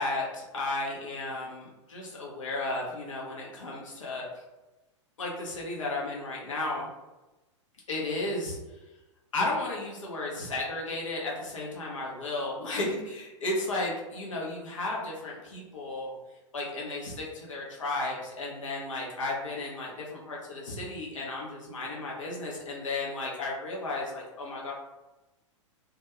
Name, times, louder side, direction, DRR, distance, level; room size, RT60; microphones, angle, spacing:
voice 1, 0.0-4.3 5.2-6.9 7.9-8.8 9.3-16.1 16.5-24.7, left 2 dB, 80° left, -3 dB, 0.7 m, -34 dB
2.3 x 2.2 x 2.9 m, 1.1 s
figure-of-eight pair, 100°, 16 cm